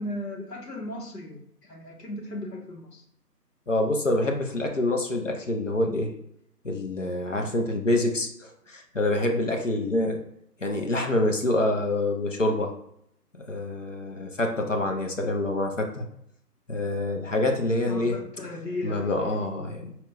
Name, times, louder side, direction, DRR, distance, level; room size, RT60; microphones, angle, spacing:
voice 1, 0.0-1.4 1.7-3.0 17.9-19.4, left 1 dB, 75° left, 0 dB, 1.2 m, -36 dB
voice 2, 3.7-6.1 6.6-10.2 10.6-12.7 13.4-16.1 16.7-18.2 18.8-20.0, left 1 dB, 50° left, 3 dB, 0.6 m, -26 dB
4.3 x 2.1 x 3.8 m, 0.72 s
figure-of-eight pair, 160°, 49 cm